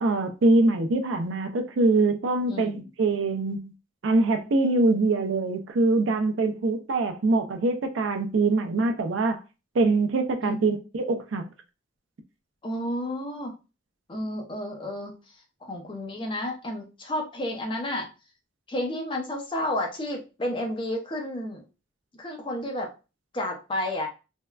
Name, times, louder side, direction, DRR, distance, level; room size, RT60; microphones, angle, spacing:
voice 1, 0.0-3.7 4.0-9.4 9.7-11.4, right 2 dB, 85° right, 0.5 m, -23 dB
voice 2, 2.5-2.8 10.4-10.6 12.6-13.5 14.1-15.1 15.6-18.1 18.7-21.6 22.1-22.9 23.3-24.1, left 1 dB, 25° left, 0.6 m, -31 dB
3.5 x 2.1 x 2.2 m
head